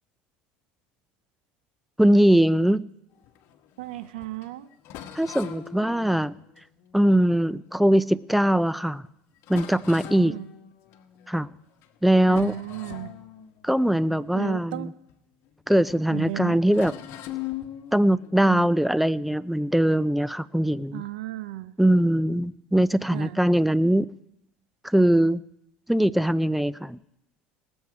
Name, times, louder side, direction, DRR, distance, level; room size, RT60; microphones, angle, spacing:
voice 1, 2.0-2.9 5.2-6.4 6.9-9.0 9.5-10.3 11.3-11.5 12.0-12.5 13.6-14.9 15.7-16.9 17.9-21.0 21.8-24.1 24.8-25.4 25.9-27.0, right 1 dB, ahead, 0.4 m, -21 dB
sound 1, 3.1-8.1 8.7-8.8 9.1-9.2 9.4-11.4 11.7-12.0 12.2-15.6 15.9-16.1 16.7-19.7, left 12 dB, 60° left, 1.1 m, -42 dB
voice 2, 3.8-4.7 10.2-10.5 12.3-13.1 14.3-14.9 16.1-16.6 18.4-18.7 20.9-21.8 23.1-23.4, right 16 dB, 85° right, 0.5 m, -34 dB
18.5 x 7.1 x 4.8 m
supercardioid pair, 95°, 5 cm